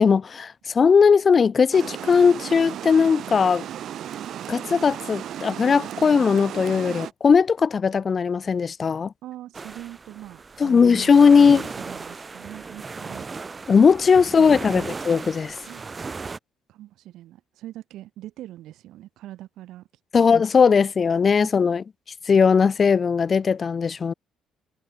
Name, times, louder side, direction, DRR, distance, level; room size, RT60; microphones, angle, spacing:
voice 1, 0.0-3.7 4.5-9.1 10.6-11.6 13.7-15.6 20.1-21.8 22.3-24.1, left 6 dB, 30° left, 0.4 m, -18 dB
sound 1, 1.6-4.1, right 1 dB, 5° right, 6.9 m, -50 dB
Water, 1.7-7.1, right 10 dB, 55° right, 1.1 m, -35 dB
voice 2, 9.2-13.3 14.1-14.9 15.7-16.1 16.7-19.9 20.2-20.3, right 14 dB, 70° right, 8.0 m, -42 dB
sound 2, 9.5-16.4, right 4 dB, 20° right, 1.8 m, -36 dB
cardioid pair, 155°, 0 cm